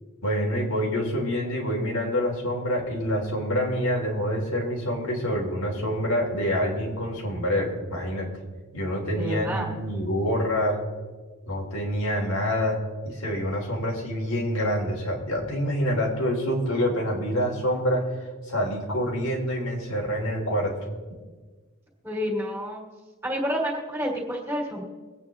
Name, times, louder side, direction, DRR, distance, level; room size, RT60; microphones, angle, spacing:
voice 1, 0.2-8.3 8.7-10.8 11.5-20.8, equal, 85° left, -2 dB, 3.5 m, -26 dB
voice 2, 9.1-9.8 22.0-22.8 23.2-24.8, equal, 10° right, -1 dB, 2.7 m, -29 dB
23.0 x 8.9 x 3.7 m, 1.4 s
head